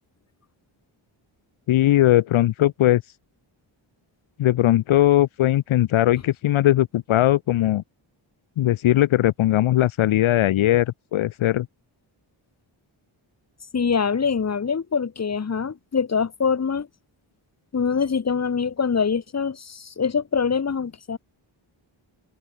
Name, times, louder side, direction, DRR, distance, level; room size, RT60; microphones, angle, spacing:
voice 1, 1.7-3.0 4.4-7.8 8.6-11.7, left 14 dB, 75° left, 0.5 m, -19 dB
voice 2, 13.7-16.9 17.7-21.2, left 6 dB, 30° left, 1.0 m, -24 dB
wide cardioid pair, 165°, 49 cm